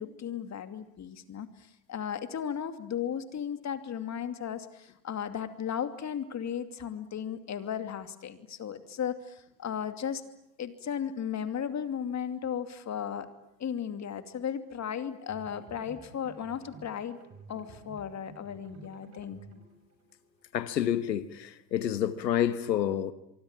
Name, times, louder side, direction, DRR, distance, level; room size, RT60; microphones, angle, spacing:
voice 1, 0.0-10.2 10.6-13.3 13.6-17.2 17.5-19.4, left 8 dB, 35° left, 2.7 m, -35 dB
sound 1, 15.2-21.0, right 3 dB, 30° right, 7.6 m, -52 dB
voice 2, 20.5-23.1, left 10 dB, 90° left, 1.5 m, -29 dB
25.5 x 24.0 x 8.9 m
hypercardioid pair, 85°, 49 cm